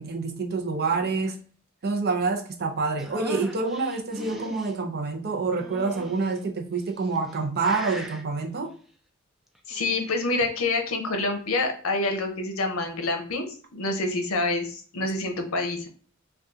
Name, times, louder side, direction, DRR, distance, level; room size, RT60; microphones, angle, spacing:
voice 1, 0.0-1.4 1.8-8.7, right 4 dB, 50° right, 0.6 m, -27 dB
sound 1, 3.0-4.7 5.5-6.4 7.0-7.4 7.6-8.2 9.6-10.3, equal, ahead, 0.3 m, -40 dB
voice 2, 9.7-13.5 13.7-15.9, left 2 dB, 70° left, 0.7 m, -27 dB
2.7 x 2.3 x 3.5 m
head